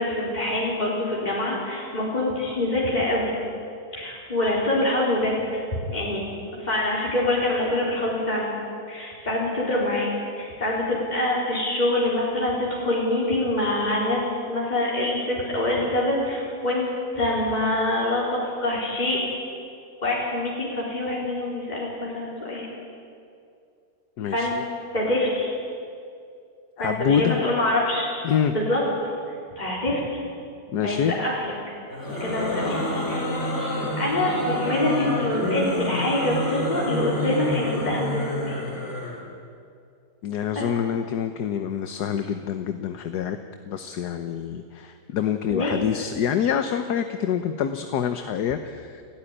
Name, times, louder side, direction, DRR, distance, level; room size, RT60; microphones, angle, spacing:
voice 1, 0.0-3.3 3.9-6.2 6.5-8.5 8.9-10.1 10.4-19.2 20.0-22.6 24.3-24.5 24.9-25.5 26.8-28.1 28.5-29.1 29.6-30.0 30.8-31.5 32.1-33.3 34.0-38.6 40.5-40.6 45.5-45.8, left 1 dB, 25° left, -6 dB, 4.7 m, -25 dB
voice 2, 24.2-24.6 26.8-27.4 28.2-28.5 30.7-31.1 40.2-43.4 43.7-49.0, left 8 dB, 70° left, 8 dB, 1.5 m, -26 dB
sound 1, 31.9-39.2, left 1 dB, 40° left, 4.6 m, -28 dB
29.5 x 13.5 x 9.9 m, 2.4 s
omnidirectional pair, 1.9 m